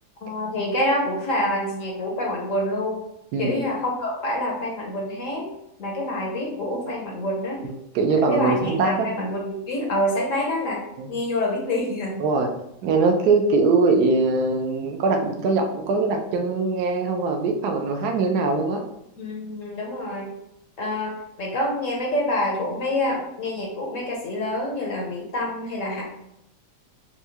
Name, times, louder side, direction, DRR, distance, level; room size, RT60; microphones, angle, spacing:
voice 1, 0.2-3.0 3.4-5.5 5.8-7.6 8.1-10.8 11.1-12.2 19.2-20.3 20.8-26.0, left 1 dB, 60° left, -1 dB, 0.9 m, -27 dB
voice 2, 7.6-9.1 11.0-11.2 12.2-12.5 12.8-18.8, right 3 dB, 70° right, 3 dB, 1.1 m, -22 dB
5.7 x 2.3 x 2.8 m, 0.81 s
omnidirectional pair, 2.0 m